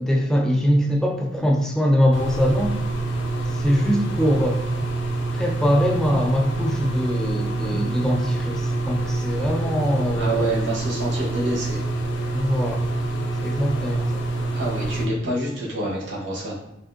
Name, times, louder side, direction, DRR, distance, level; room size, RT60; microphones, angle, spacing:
voice 1, 0.0-2.8 3.5-4.6 5.3-10.5 12.3-12.8 13.4-14.2, equal, 5° left, 0 dB, 0.3 m, -22 dB
sound 1, 2.1-15.0, right 2 dB, 65° left, 0.5 m, -26 dB
voice 2, 10.1-11.8 14.5-16.6, right 1 dB, 65° right, -3 dB, 0.9 m, -27 dB
3.4 x 2.5 x 2.5 m, 0.87 s
head